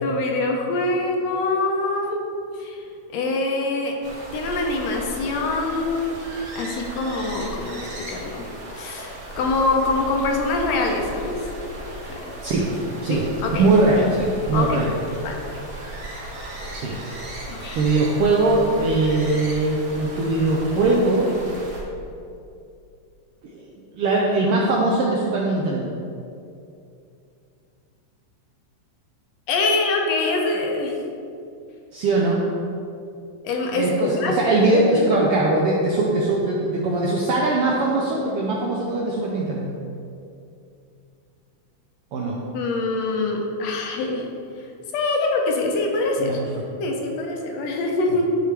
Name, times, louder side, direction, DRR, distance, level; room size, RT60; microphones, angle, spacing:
voice 1, 0.0-2.2 2.6-2.8 3.1-3.9 4.3-6.2 6.6-8.5 8.7-11.4 12.1-12.2 13.1-13.7 14.5-14.9 15.2-15.5 17.5-17.8 29.5-31.0 33.4-34.4 34.7-35.5 42.5-44.3 44.9-46.3 46.8-48.3, left 3 dB, 70° left, 1 dB, 1.8 m, -24 dB
sound 1, 4.0-21.8, right 1 dB, 50° right, 1.5 m, -36 dB
voice 2, 13.5-14.9 16.7-16.9 17.7-21.3 23.4-23.7 24.0-25.9 31.9-32.4 33.7-39.7 42.1-42.4 46.2-46.5, right 2 dB, 80° right, -3 dB, 1.2 m, -21 dB
10.5 x 4.7 x 3.3 m, 2.6 s
omnidirectional pair, 3.4 m